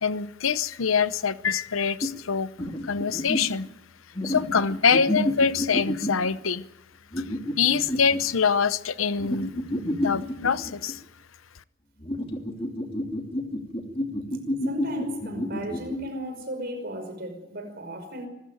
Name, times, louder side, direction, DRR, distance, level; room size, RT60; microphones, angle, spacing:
voice 1, 0.0-2.5 2.8-3.7 4.2-6.6 7.2-7.3 7.6-9.5 10.0-11.0, left 6 dB, 85° left, 16 dB, 0.8 m, -24 dB
sound 1, 2.0-2.1 2.6-3.5 4.2-6.3 7.1-8.2 9.2-10.9 12.0-16.0, left 1 dB, 25° left, 2.8 m, -29 dB
voice 2, 14.7-18.3, equal, 50° right, 6 dB, 5.5 m, -34 dB
25.0 x 14.5 x 9.2 m, 0.95 s
head